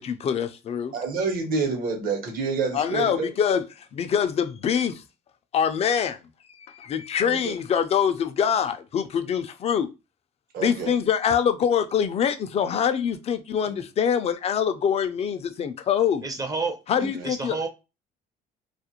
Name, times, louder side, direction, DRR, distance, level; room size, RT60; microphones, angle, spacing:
voice 1, 0.0-0.9 2.7-5.0 5.5-6.2 6.6-9.9 10.6-16.3 16.9-17.6, left 8 dB, 40° left, 0.4 m, -24 dB
voice 2, 0.9-3.3 7.2-7.6 10.5-10.9 13.7-13.8 17.0-17.3, right 4 dB, 60° right, 1.0 m, -28 dB
voice 3, 16.2-16.8 17.2-17.7, right 4 dB, 20° right, 0.5 m, -29 dB
2.4 x 2.0 x 2.9 m
cardioid pair, 110°, 17 cm